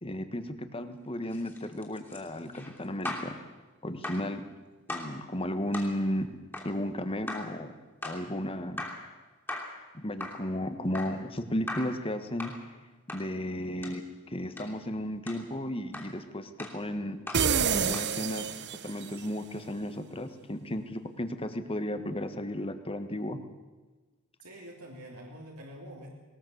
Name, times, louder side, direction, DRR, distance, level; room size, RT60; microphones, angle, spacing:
voice 1, 0.0-3.4 3.8-4.4 4.9-6.3 6.6-7.7 8.0-8.8 9.9-12.5 13.1-14.0 14.3-17.2 17.7-18.5 18.8-23.4, left 1 dB, 25° left, 9 dB, 1.4 m, -34 dB
sound 1, 1.2-3.4 4.0-4.3 4.9-5.2 5.7-6.0 6.5-6.8 7.3-7.6 8.0-8.3 8.8-9.1 9.5-9.8 10.2-10.5 10.9-11.2 11.7-12.0 12.4-12.6 13.1-13.3 13.8-14.0 14.6-14.7 15.3-15.5 15.9-16.2 16.6-16.8 17.3-17.5 17.9-18.1, left 1 dB, 10° left, 3.0 m, -39 dB
sound 2, 17.3-19.2, right 7 dB, 50° right, 0.9 m, -28 dB
voice 2, 24.4-26.1, equal, 85° right, -2 dB, 3.4 m, -46 dB
20.5 x 19.0 x 8.0 m, 1.2 s
head